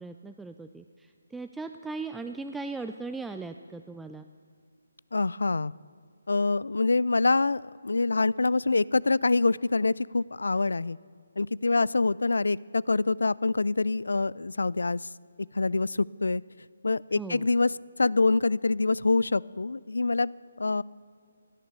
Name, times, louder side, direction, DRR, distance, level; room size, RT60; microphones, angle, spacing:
voice 1, 0.0-4.3 17.1-17.5, right 3 dB, 5° right, 8 dB, 0.3 m, -38 dB
voice 2, 5.1-5.7 6.3-11.0 11.4-15.0 15.5-16.4 16.8-17.7 18.0-20.3 20.6-20.8, left 3 dB, 80° left, 23 dB, 0.3 m, -25 dB
16.5 x 9.3 x 8.0 m, 2.2 s
figure-of-eight pair, 155°, 0 cm